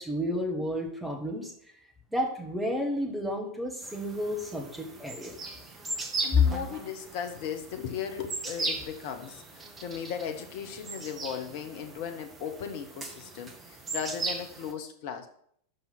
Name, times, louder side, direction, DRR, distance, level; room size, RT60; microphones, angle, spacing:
voice 1, 0.0-1.7 2.1-5.3 6.3-6.4, left 2 dB, 5° right, 0 dB, 1.6 m, -30 dB
sound 1, 3.8-14.7, right 3 dB, 20° right, 1.2 m, -38 dB
voice 2, 6.2-15.3, left 7 dB, 50° left, 7 dB, 1.0 m, -37 dB
5.4 x 5.4 x 5.9 m, 0.66 s
figure-of-eight pair, 90°, 0 cm